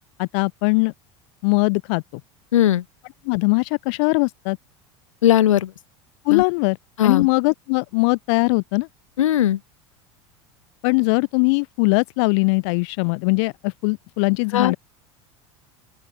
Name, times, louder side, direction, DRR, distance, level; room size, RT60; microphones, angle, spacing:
voice 1, 0.2-0.9 1.4-2.2 3.2-4.6 6.2-6.8 7.0-8.9 10.8-14.8, left 32 dB, 65° left, 1.0 m, -20 dB
voice 2, 2.5-2.8 5.2-5.7 6.3-6.4 7.0-7.3 9.2-9.6 14.5-14.8, left 11 dB, 90° left, 1.5 m, -18 dB
open air
hypercardioid pair, 90°, 16 cm